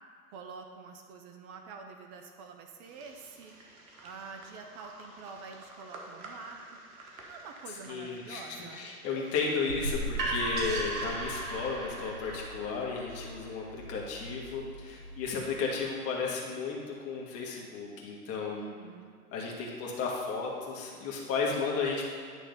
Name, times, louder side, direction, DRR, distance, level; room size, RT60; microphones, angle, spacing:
voice 1, 0.3-3.5 4.0-6.8 7.3-8.9 18.6-19.2, right 5 dB, 25° right, 4 dB, 0.4 m, -47 dB
sound 1, 2.8-10.1, right 2 dB, 65° right, 1.5 m, -51 dB
voice 2, 7.9-18.6 19.3-22.1, left 4 dB, 30° left, -2 dB, 1.6 m, -34 dB
sound 2, 9.7-15.5, right 1 dB, 85° right, 1.5 m, -36 dB
9.7 x 3.3 x 5.3 m, 2.1 s
hypercardioid pair, 110°, 45 cm